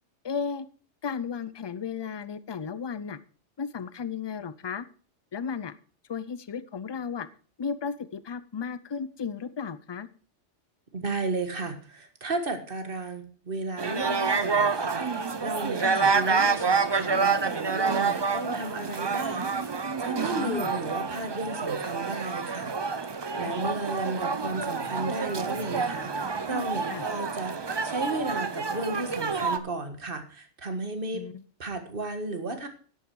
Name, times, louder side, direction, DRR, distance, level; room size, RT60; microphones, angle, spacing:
voice 1, 0.2-0.7 1.0-3.2 3.6-4.9 5.3-5.7 6.1-7.3 7.6-10.1 15.8-16.1 20.4-20.7 23.6-23.8 26.9-27.1 31.1-31.4, left 6 dB, 45° left, 15 dB, 0.3 m, -34 dB
voice 2, 10.9-19.7 20.0-22.7 23.4-31.2 31.6-32.7, right 3 dB, 50° right, 7 dB, 1.7 m, -34 dB
sound 1, 13.8-29.6, right 5 dB, 30° right, 0.5 m, -28 dB
11.0 x 8.5 x 4.7 m, 0.42 s
omnidirectional pair, 1.2 m